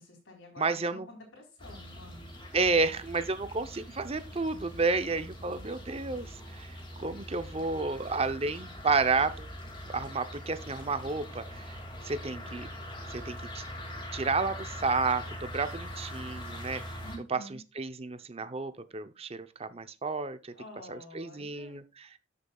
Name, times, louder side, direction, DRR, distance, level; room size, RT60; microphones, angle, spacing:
voice 1, 0.0-2.3 17.0-17.6 20.5-21.8, left 1 dB, 80° left, 4.0 m, -49 dB
voice 2, 0.6-1.1 2.5-9.5 9.9-11.8 12.0-12.7 13.1-13.6 14.1-16.8 17.3-17.4 17.8-20.5 20.9-22.1, right 4 dB, 30° right, 0.7 m, -31 dB
sound 1, 1.6-17.2, equal, 25° left, 2.3 m, -43 dB
13.0 x 6.7 x 2.3 m
head